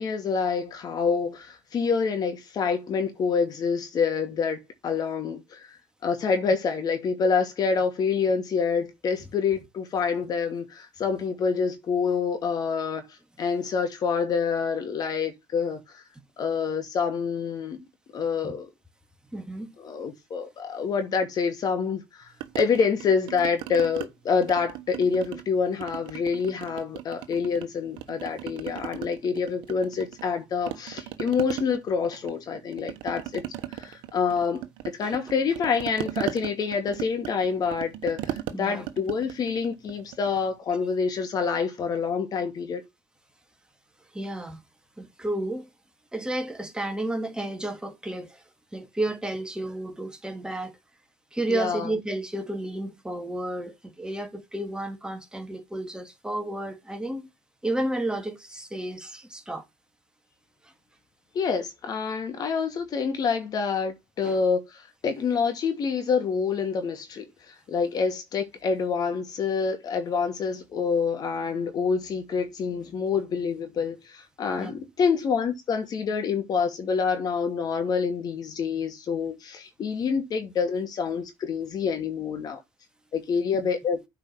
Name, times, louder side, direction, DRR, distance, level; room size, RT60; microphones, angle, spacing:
voice 1, 0.0-16.0 16.4-17.8 18.1-18.7 19.8-22.3 22.5-33.4 33.7-42.8 51.5-51.9 61.3-82.6 83.1-84.0, left 5 dB, 50° left, 2.4 m, -27 dB
voice 2, 19.3-19.7 35.0-35.2 38.5-38.8 44.1-44.6 45.0-45.7 46.1-48.4 48.7-50.8 51.3-57.3 57.6-59.6 64.2-64.4 74.6-74.7, right 1 dB, 10° right, 2.1 m, -32 dB
sound 1, 22.4-24.1 24.4-25.5 25.8-27.7 28.0-30.4 30.7-40.5, right 13 dB, 75° right, 1.1 m, -37 dB
8.6 x 4.8 x 6.1 m
supercardioid pair, 75°, 8 cm